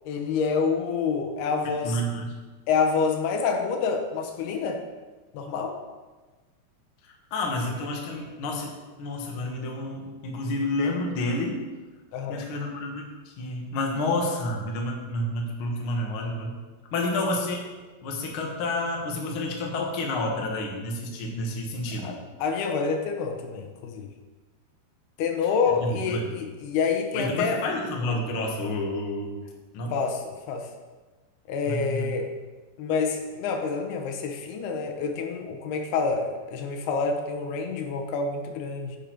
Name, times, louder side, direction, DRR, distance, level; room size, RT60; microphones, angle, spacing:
voice 1, 0.1-2.0 2.7-4.8 5.3-5.8 12.1-12.4 22.0-24.1 25.2-27.6 29.9-30.7 31.5-32.3 32.8-39.0, left 5 dB, 80° left, 4 dB, 3.0 m, -27 dB
voice 2, 1.6-2.4 7.1-8.7 9.0-11.6 12.3-16.5 16.9-17.7 18.0-22.2 25.8-26.3 27.1-29.4 29.7-29.9 31.6-32.1, left 1 dB, 65° left, 0 dB, 1.3 m, -29 dB
10.0 x 6.8 x 4.5 m, 1.3 s
omnidirectional pair, 4.6 m